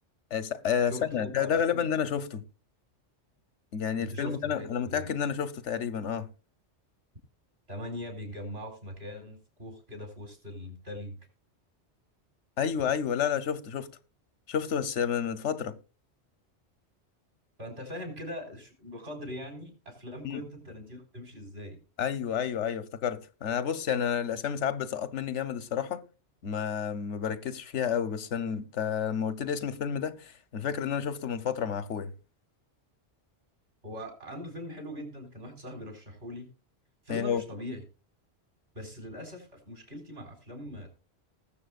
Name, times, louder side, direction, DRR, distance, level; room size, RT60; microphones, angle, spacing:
voice 1, 0.3-2.4 3.7-6.3 12.6-13.9 14.5-15.8 20.2-20.4 22.0-26.0 26.4-32.1 37.1-37.4, left 8 dB, 85° left, 1.2 m, -30 dB
voice 2, 0.9-1.9 4.0-5.0 7.7-11.2 17.6-21.8 33.8-36.5 37.0-37.8 38.7-40.9, left 1 dB, 60° right, 4.5 m, -41 dB
19.5 x 7.3 x 2.4 m
omnidirectional pair, 1.2 m